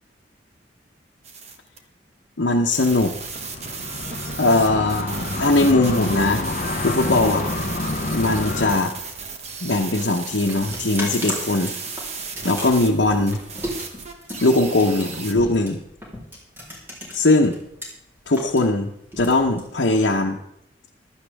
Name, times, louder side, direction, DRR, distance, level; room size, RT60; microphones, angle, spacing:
sound 1, 1.2-1.8 2.7-15.3, right 5 dB, 35° right, 1.3 m, -35 dB
voice 1, 2.4-3.1 4.4-6.4 6.8-7.5 8.1-8.9 9.6-11.7 12.4-13.4 14.4-15.8 17.1-17.6 18.3-20.4, left 2 dB, 75° left, -1 dB, 1.0 m, -20 dB
sound 2, 3.3-8.8, left 2 dB, 45° left, 0.9 m, -28 dB
sound 3, 10.4-17.9 18.2-20.1, equal, 10° right, 3.6 m, -35 dB
15.5 x 12.0 x 3.5 m, 0.76 s
head